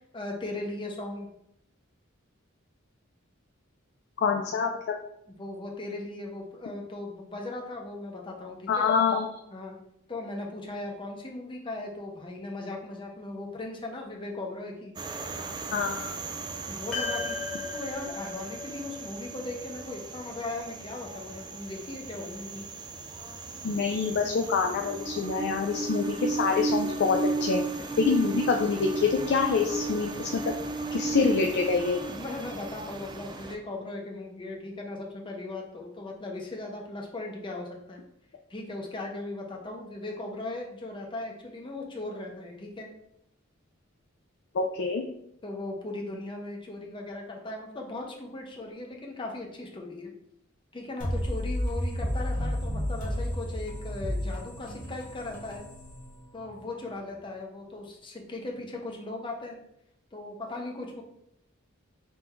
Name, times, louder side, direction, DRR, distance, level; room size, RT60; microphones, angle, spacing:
voice 1, 0.1-1.3 5.3-8.9 9.5-9.8 10.1-14.9 16.7-17.4 17.7-22.6 27.8-27.9 32.0-38.0 38.5-42.9 45.4-50.1 50.7-55.7 56.3-59.6 60.1-61.0, left 2 dB, 25° left, 0 dB, 0.7 m, -38 dB
voice 2, 4.2-4.7 8.7-9.3 15.7-16.1 23.6-27.6 28.0-30.3 30.9-32.0 44.5-45.0, left 5 dB, 55° left, 3 dB, 0.4 m, -26 dB
sound 1, 15.0-33.6, right 3 dB, 20° right, 0.3 m, -35 dB
sound 2, 16.9-21.4, left 4 dB, ahead, 1.1 m, -38 dB
sound 3, 51.0-56.6, equal, 40° left, 1.0 m, -32 dB
3.6 x 2.5 x 4.4 m, 0.77 s
head